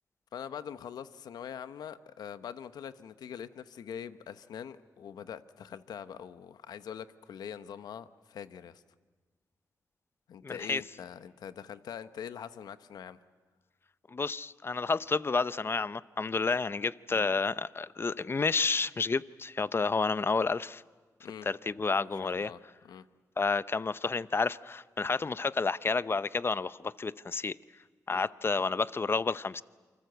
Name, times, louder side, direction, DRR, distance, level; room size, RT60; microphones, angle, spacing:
voice 1, 0.3-8.8 10.3-13.2 17.1-17.3 21.2-21.5 22.2-23.1 28.1-28.3, left 8 dB, 90° left, 1.0 m, -43 dB
voice 2, 10.4-10.8 14.1-20.8 21.4-22.5 23.4-27.6 28.1-29.6, left 4 dB, 35° left, 0.7 m, -30 dB
28.5 x 25.0 x 8.0 m
cardioid pair, 70°, 7 cm